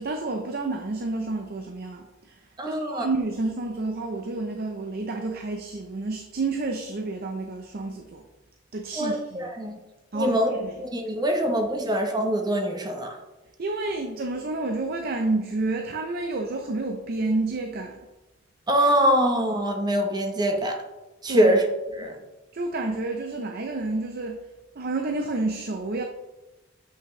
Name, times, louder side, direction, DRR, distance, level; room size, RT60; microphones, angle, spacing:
voice 1, 0.0-2.4 2.6-8.2 8.7-9.5 10.1-10.8 13.6-18.0 21.3-21.5 22.0-22.1 22.5-24.4 24.8-26.0, right 2 dB, 50° right, 4 dB, 0.6 m, -30 dB
voice 2, 2.6-3.1 9.0-9.8 10.1-10.5 10.8-13.2 18.7-20.8 21.2-21.6 22.0-22.1, equal, 20° right, 3 dB, 0.9 m, -23 dB
7.9 x 5.6 x 3.2 m, 1.1 s
head